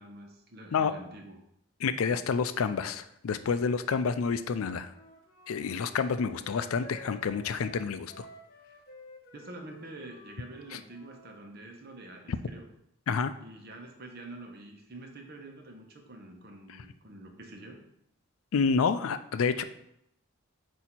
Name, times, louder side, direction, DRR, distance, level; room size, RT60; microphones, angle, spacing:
voice 1, 0.0-1.4 9.3-12.7 13.4-17.8, right 2 dB, 45° right, 2 dB, 0.9 m, -47 dB
voice 2, 1.8-4.9 5.5-8.3 12.3-12.4 13.1-13.3 18.5-19.6, left 5 dB, 75° left, 11 dB, 0.4 m, -29 dB
Wind instrument woodwind instrument, 4.8-11.4, left 1 dB, 45° left, 0.9 m, -52 dB
8.2 x 2.8 x 4.4 m, 0.78 s
head